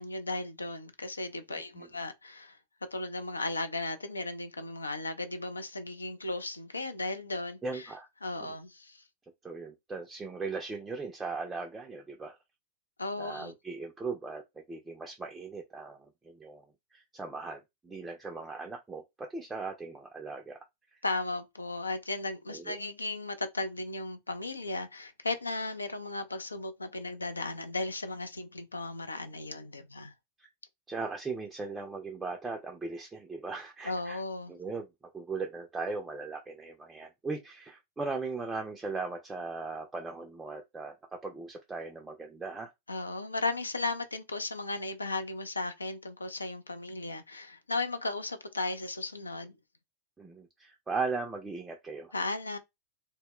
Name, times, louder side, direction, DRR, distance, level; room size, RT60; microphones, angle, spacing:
voice 1, 0.0-2.6 2.9-7.9 8.2-9.0 13.0-13.5 21.0-30.1 33.8-34.5 42.9-49.6 52.1-52.6, left 2 dB, 80° left, 0.4 m, -36 dB
voice 2, 7.6-8.1 8.4-8.5 9.4-12.4 13.2-16.7 16.9-20.6 22.5-22.8 30.4-30.5 30.9-34.2 34.5-34.9 35.1-42.7 50.2-52.1, right 4 dB, 10° right, 0.4 m, -38 dB
2.1 x 2.0 x 3.6 m
figure-of-eight pair, 90°, 0 cm